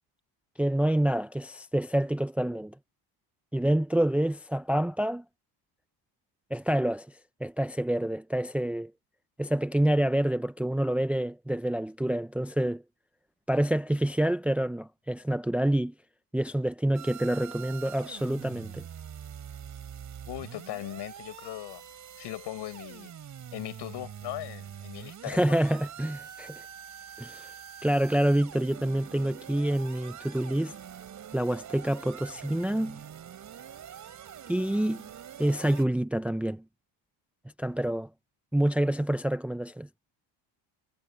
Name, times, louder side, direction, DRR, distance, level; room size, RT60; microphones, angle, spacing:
voice 1, 0.6-2.7 3.5-5.2 6.5-7.1 7.4-8.9 9.4-12.8 13.5-15.9 16.3-18.8 25.3-26.6 27.2-27.5 27.8-30.7 31.3-33.0 34.5-35.0 35.4-36.6 37.6-38.1 38.5-39.9, right 1 dB, 5° right, 0.6 m, -27 dB
sound 1, 16.9-35.8, right 9 dB, 40° right, 4.8 m, -45 dB
voice 2, 20.2-21.8 22.2-23.1 23.5-25.6, left 16 dB, 65° left, 7.9 m, -39 dB
cardioid pair, 120°, 44 cm